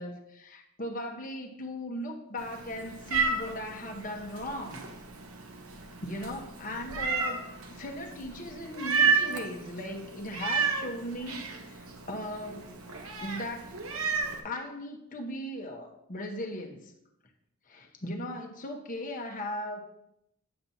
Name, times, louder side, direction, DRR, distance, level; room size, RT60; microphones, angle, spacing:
voice 1, 0.0-4.8 6.0-7.4 7.7-12.7 13.2-13.7 14.4-16.9 17.7-19.8, left 1 dB, 40° left, 2 dB, 1.0 m, -38 dB
Meow, 2.4-14.4, right 5 dB, 90° right, 1.0 m, -32 dB
8.7 x 7.4 x 2.7 m, 0.80 s
head